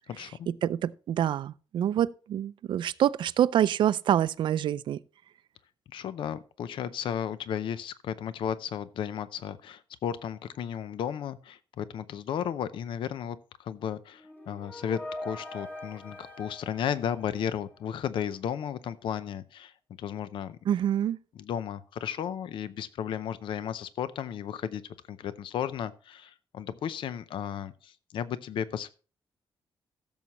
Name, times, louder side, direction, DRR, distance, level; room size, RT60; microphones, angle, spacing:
voice 1, 0.1-0.5 5.9-19.7 20.0-20.6 21.4-24.8 25.1-28.9, left 8 dB, 75° left, 0.6 m, -34 dB
voice 2, 0.6-5.0 20.7-21.2, right 10 dB, 65° right, 0.4 m, -26 dB
sound 1, 14.2-18.1, left 1 dB, 20° left, 1.5 m, -43 dB
15.5 x 7.2 x 3.0 m
wide cardioid pair, 150°, 9 cm